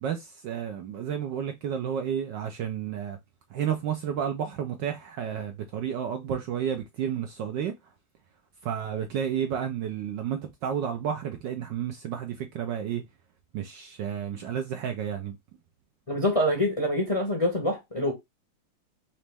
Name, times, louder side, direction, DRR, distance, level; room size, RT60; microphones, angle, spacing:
voice 1, 0.0-3.2 3.5-7.7 8.6-13.0 13.5-15.4, right 8 dB, 70° right, 1.1 m, -31 dB
voice 2, 16.1-18.1, left 1 dB, 25° left, 0.7 m, -25 dB
4.2 x 3.0 x 3.3 m
omnidirectional pair, 2.4 m